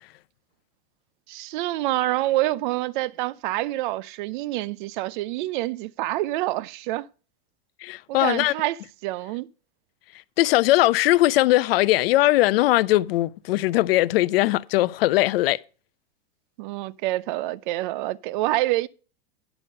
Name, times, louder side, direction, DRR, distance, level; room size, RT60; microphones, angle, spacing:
voice 1, 1.3-7.1 8.1-9.5 16.6-18.9, right 17 dB, 55° right, 0.6 m, -27 dB
voice 2, 7.8-8.5 10.4-15.6, left 17 dB, 70° left, 0.6 m, -20 dB
10.0 x 6.9 x 5.3 m
supercardioid pair, 150°, 30 cm